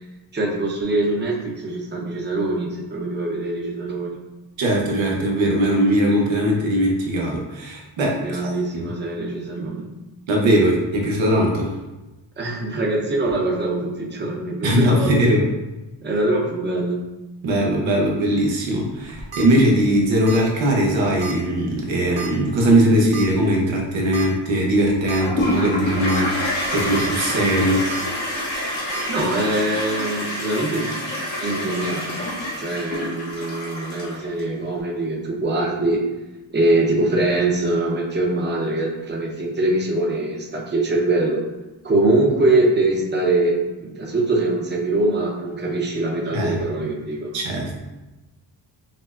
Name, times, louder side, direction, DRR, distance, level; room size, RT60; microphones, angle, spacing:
voice 1, 0.3-4.2 8.2-9.9 12.4-15.2 16.0-17.0 29.1-31.0 31.4-32.3 32.6-36.0 36.5-41.4 41.8-47.4, right 2 dB, 25° right, -1 dB, 0.7 m, -23 dB
voice 2, 4.6-8.9 10.3-11.7 14.6-15.5 17.4-27.8 46.3-46.6 47.3-47.7, right 1 dB, 85° right, -1 dB, 0.9 m, -20 dB
sound 1, 19.0-19.4 20.3-20.5 20.8-20.9 21.2-21.3 22.2-22.4 23.1-23.3 24.1-24.3 24.7-24.8 25.1-25.2 25.9-26.2 26.6-27.1 27.9-28.0 28.9-29.0, right 5 dB, 55° right, 0.8 m, -33 dB
Toilet flush, 25.2-34.4, left 1 dB, 75° left, 1.1 m, -27 dB
5.7 x 2.0 x 2.4 m, 1.1 s
cardioid pair, 75°, 45 cm